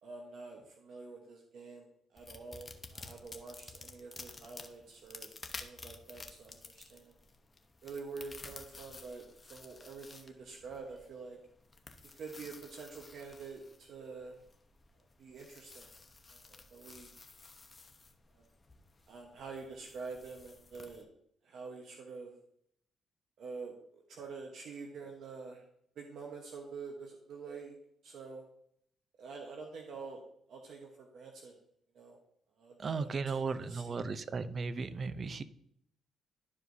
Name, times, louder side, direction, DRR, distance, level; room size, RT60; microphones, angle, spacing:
voice 1, 0.0-5.3 5.6-7.2 7.8-11.4 12.1-14.4 15.2-15.9 16.3-17.1 18.3-18.5 19.1-21.1 21.4-22.3 23.4-25.6 25.9-27.8 28.0-28.4 29.2-30.2 30.5-31.5 31.9-32.2 32.6-33.1 33.3-34.1, right 4 dB, 70° right, 2 dB, 1.1 m, -47 dB
sound 1, 2.2-21.0, left 3 dB, 30° left, 0.9 m, -53 dB
voice 2, 32.8-35.4, right 4 dB, 40° right, 12 dB, 0.6 m, -36 dB
12.0 x 4.8 x 2.7 m, 0.71 s
cardioid pair, 90°, 0 cm